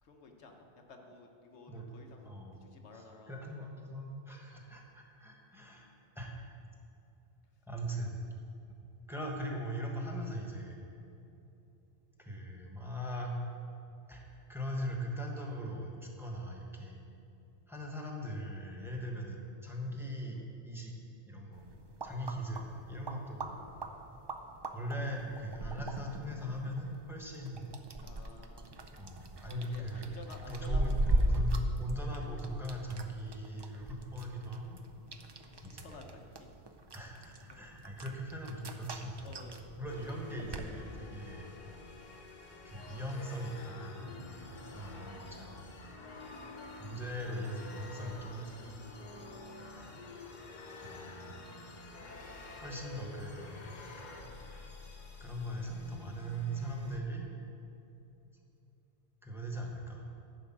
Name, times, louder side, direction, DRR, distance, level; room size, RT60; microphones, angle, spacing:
voice 1, 0.0-3.4 28.0-28.7 29.4-31.4 35.2-36.6 37.5-37.7 39.2-39.9 46.2-46.5, left 3 dB, 90° left, 3 dB, 1.3 m, -53 dB
voice 2, 2.2-2.6 2.9-5.9 6.1-6.3 7.7-8.2 9.1-10.8 12.2-13.4 14.1-17.0 17.7-20.9 21.3-21.7 22.0-23.6 24.7-27.7 28.9-30.2 30.5-34.8 35.6-36.0 36.9-39.3 39.8-41.5 42.6-45.7 46.8-48.8 49.7-49.9 50.8-51.3 51.9-52.0 52.6-54.2 55.2-57.3 59.2-60.0, equal, ahead, 0 dB, 1.2 m, -40 dB
sound 1, 21.5-40.7, right 1 dB, 45° right, 0.3 m, -38 dB
sound 2, 39.9-57.0, left 2 dB, 45° left, 0.9 m, -49 dB
10.5 x 5.0 x 7.4 m, 2.8 s
omnidirectional pair, 1.1 m